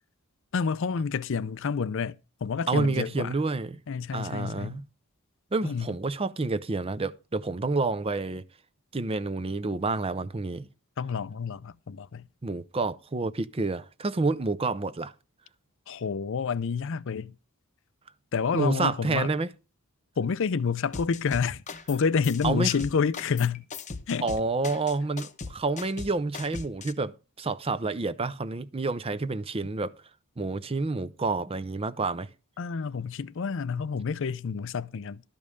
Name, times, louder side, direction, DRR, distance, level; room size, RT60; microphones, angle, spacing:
voice 1, 0.5-3.4 3.9-4.8 5.6-5.9 11.0-12.2 15.9-17.3 18.3-19.3 20.2-23.7 24.1-24.3 32.6-35.2, left 5 dB, 60° left, 0.5 m, -29 dB
voice 2, 2.7-3.8 4.1-4.8 5.5-8.4 8.9-10.7 12.4-15.1 18.5-19.5 22.4-22.7 24.2-29.9 30.4-32.3, right 3 dB, 25° right, 0.5 m, -29 dB
sound 1, 20.9-22.0 22.2-26.9, left 4 dB, 35° left, 0.8 m, -39 dB
12.5 x 5.3 x 6.4 m
head